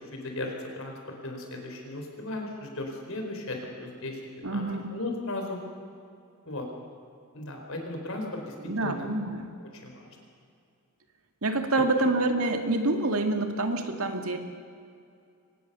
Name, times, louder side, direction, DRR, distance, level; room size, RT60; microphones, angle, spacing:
voice 1, 0.0-4.2 4.5-4.6 4.9-5.6 6.5-6.6 7.3-8.5 8.8-9.1 9.7-10.1 12.0-12.1, left 2 dB, 70° left, 2 dB, 4.6 m, -36 dB
voice 2, 4.4-4.9 8.6-9.5 11.4-14.4, right 2 dB, 85° right, 5 dB, 2.2 m, -27 dB
24.0 x 19.0 x 7.0 m, 2.4 s
head